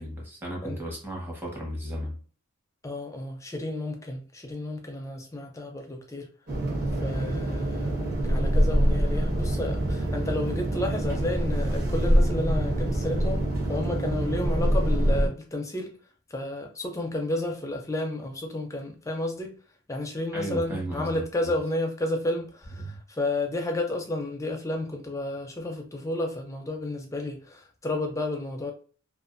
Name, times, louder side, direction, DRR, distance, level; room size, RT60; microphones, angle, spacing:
voice 1, 0.0-2.2 20.3-21.5 22.8-23.0, right 1 dB, 10° right, 0.9 m, -35 dB
voice 2, 2.8-6.3 7.0-15.9 16.3-19.5 19.9-28.7, left 1 dB, 15° left, 0.5 m, -31 dB
sound 1, 6.5-15.3, right 1 dB, 45° right, 1.1 m, -25 dB
2.5 x 2.4 x 2.5 m
head